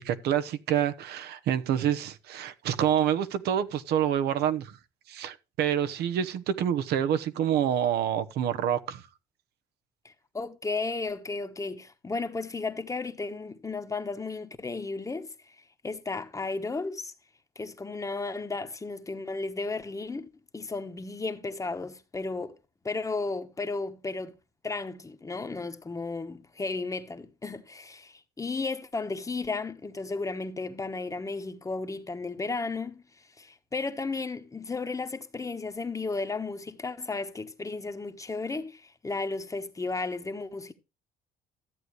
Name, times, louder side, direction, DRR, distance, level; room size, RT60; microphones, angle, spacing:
voice 1, 0.0-4.8 5.1-9.0, right 9 dB, 75° right, 1.0 m, -27 dB
voice 2, 10.0-15.5 15.8-17.1 17.6-20.3 20.5-22.5 22.8-24.3 24.6-33.0 33.4-40.7, left 3 dB, 20° left, 1.2 m, -34 dB
13.5 x 8.1 x 3.1 m
cardioid pair, 110°, 17 cm